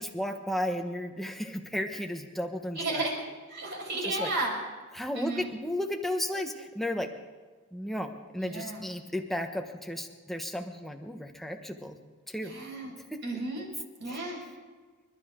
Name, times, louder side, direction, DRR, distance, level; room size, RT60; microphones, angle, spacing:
voice 1, 0.0-3.1 4.0-4.3 4.9-7.1 7.7-12.0 12.3-12.5 13.1-13.2 14.1-14.2, left 1 dB, ahead, 4 dB, 1.2 m, -34 dB
voice 2, 2.8-3.2 3.5-4.5 5.1-5.5 8.4-8.8 12.4-12.9 13.2-13.7 14.0-14.4, right 2 dB, 55° right, -1 dB, 5.6 m, -33 dB
29.5 x 12.5 x 3.8 m, 1.4 s
head